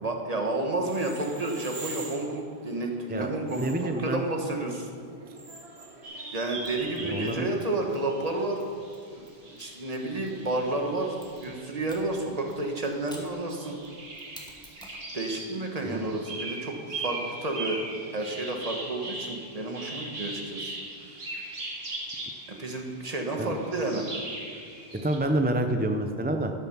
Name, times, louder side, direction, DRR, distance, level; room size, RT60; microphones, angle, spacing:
voice 1, 0.0-3.7 4.0-4.9 6.3-8.6 9.1-13.8 15.1-17.8 18.1-20.7 21.0-21.2 22.5-24.1, right 2 dB, 40° right, 2 dB, 1.4 m, -31 dB
sound 1, 0.8-7.2, right 3 dB, 90° right, 1.8 m, -45 dB
voice 2, 3.1-4.2 7.1-7.5 15.8-16.1 23.4-23.5 25.0-26.5, right 1 dB, 15° right, 5 dB, 0.4 m, -28 dB
sound 2, 6.0-11.9 12.2-25.2, right 2 dB, 70° right, 2.1 m, -40 dB
Mechanisms, 6.6-10.5 11.2-15.0, equal, 5° left, 1.5 m, -53 dB
12.5 x 7.0 x 6.0 m, 2.2 s
omnidirectional pair, 1.0 m